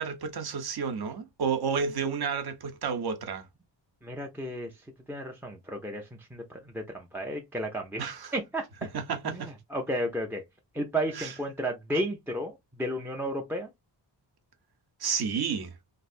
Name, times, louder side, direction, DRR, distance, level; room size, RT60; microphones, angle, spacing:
voice 1, 0.0-3.4 8.0-8.3 8.9-9.5 11.1-11.3 15.0-15.7, right 6 dB, 55° right, 0.8 m, -31 dB
voice 2, 4.0-4.7 5.1-8.1 8.3-8.9 9.2-10.4 10.7-13.7, right 1 dB, 5° right, 0.4 m, -33 dB
3.1 x 2.6 x 2.4 m
wide cardioid pair, 115°, 47 cm